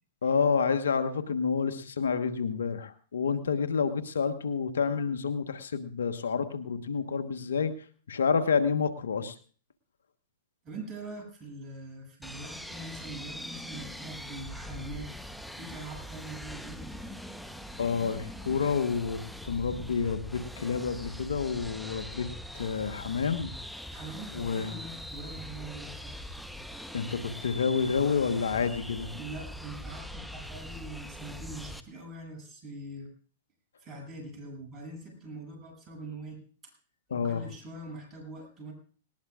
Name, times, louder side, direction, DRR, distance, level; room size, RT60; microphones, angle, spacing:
voice 1, 0.2-7.7 8.1-9.3 17.8-22.3 22.5-23.5 24.3-24.8 26.9-29.1 37.1-37.4, left 5 dB, 85° left, 10 dB, 1.3 m, -29 dB
voice 2, 10.6-15.1 15.6-17.1 23.9-26.3 29.1-33.1 33.8-36.7 37.1-38.7, right 2 dB, 25° right, 1 dB, 7.8 m, -43 dB
sound 1, 12.2-31.8, equal, ahead, 1.0 m, -42 dB
19.5 x 19.0 x 2.5 m, 0.42 s
hypercardioid pair, 115°, 0 cm